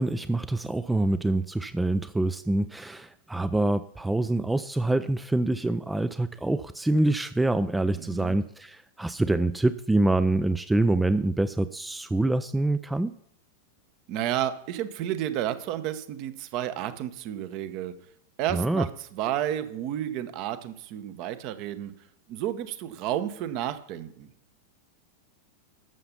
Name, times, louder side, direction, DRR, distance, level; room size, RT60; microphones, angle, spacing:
voice 1, 0.0-13.1 18.5-18.9, right 2 dB, 5° right, 14 dB, 0.4 m, -25 dB
voice 2, 8.0-8.4 14.1-17.9 18.4-21.9 22.3-24.3, right 11 dB, 45° right, 12 dB, 0.9 m, -31 dB
13.0 x 6.8 x 5.8 m, 0.72 s
figure-of-eight pair, 90°, 0 cm